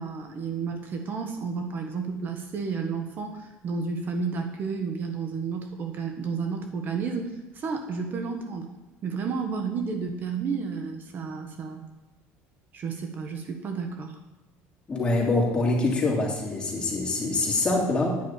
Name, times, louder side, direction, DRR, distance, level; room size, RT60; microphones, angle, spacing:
voice 1, 0.0-8.7 9.0-11.8 12.7-14.2, right 5 dB, 40° right, 5 dB, 1.2 m, -31 dB
voice 2, 14.9-18.2, left 2 dB, 20° left, -2 dB, 3.0 m, -25 dB
9.5 x 6.6 x 8.7 m, 1.1 s
cardioid pair, 140°, 5 cm